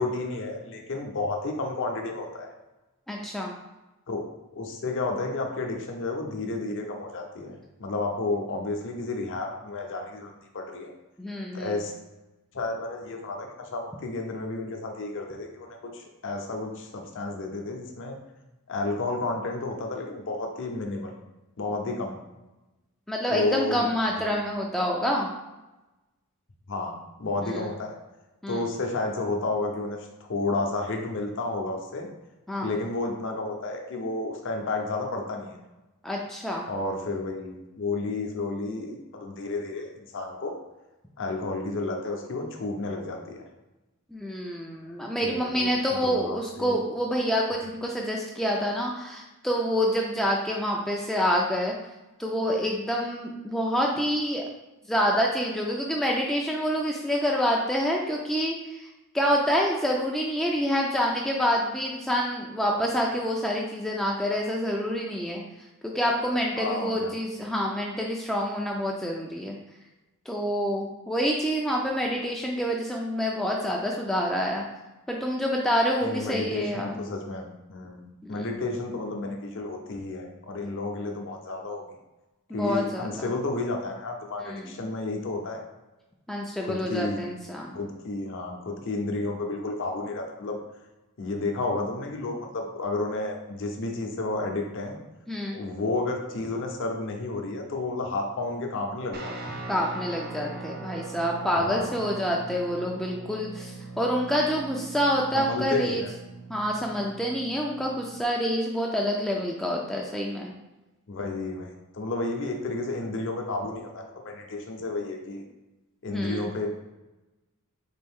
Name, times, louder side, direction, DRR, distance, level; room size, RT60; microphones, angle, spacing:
voice 1, 0.0-2.5 4.1-4.2 4.5-7.5 7.8-10.9 11.5-11.9 12.5-15.7 15.9-18.2 18.7-21.1 21.6-22.2 23.3-23.9 24.3-24.4 26.7-26.9 27.2-28.0 28.5-32.1 32.6-35.6 36.7-40.5 41.2-43.4 45.2-46.8 66.6-67.1 76.0-81.8 82.5-85.6 86.6-87.2 87.7-90.6 91.2-95.0 95.5-99.5 101.5-101.9 105.3-106.1 111.1-115.4 116.0-116.7, left 2 dB, 60° left, 2 dB, 0.6 m, -31 dB
voice 2, 3.1-3.6 11.2-11.8 23.1-25.3 27.4-27.7 28.4-28.7 32.5-32.7 36.0-36.7 44.1-51.7 52.2-54.4 54.9-58.9 59.1-65.4 65.8-69.6 70.3-74.6 75.1-76.9 78.2-78.5 82.5-83.3 84.4-84.8 86.3-87.8 95.3-95.6 99.7-106.0 106.5-110.5 116.1-116.5, equal, ahead, -2 dB, 0.3 m, -27 dB
Guitar, 99.1-108.2, right 3 dB, 45° right, 0.6 m, -40 dB
4.2 x 2.6 x 3.5 m, 1.0 s
head